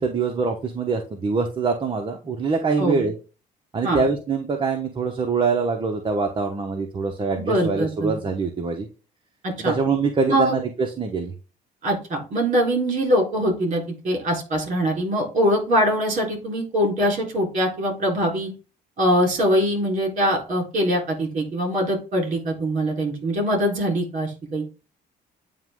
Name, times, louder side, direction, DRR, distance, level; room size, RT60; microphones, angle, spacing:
voice 1, 0.0-3.1 3.7-8.9 9.6-11.3, right 4 dB, 30° right, 3 dB, 0.9 m, -24 dB
voice 2, 7.4-8.1 9.4-9.7 10.3-10.6 11.8-18.5 19.0-24.6, equal, 45° right, 1 dB, 3.9 m, -23 dB
9.1 x 3.0 x 3.6 m, 0.33 s
cardioid pair, 110°, 17 cm